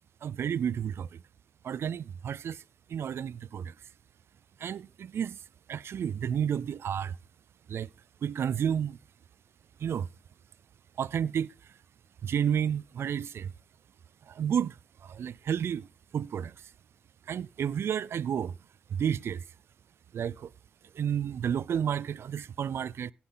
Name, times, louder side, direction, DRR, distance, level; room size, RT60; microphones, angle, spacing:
voice 1, 0.2-1.1 1.6-2.6 2.9-3.7 4.6-5.4 5.7-7.2 7.7-7.9 8.2-9.0 9.8-10.1 11.0-11.5 12.2-13.5 14.3-14.7 15.0-15.9 16.1-16.5 17.3-18.5 18.9-19.4 20.1-20.5 21.0-23.1, right 8 dB, 65° right, 0.4 m, -31 dB
17.0 x 5.8 x 3.9 m
supercardioid pair, 55°, 5 cm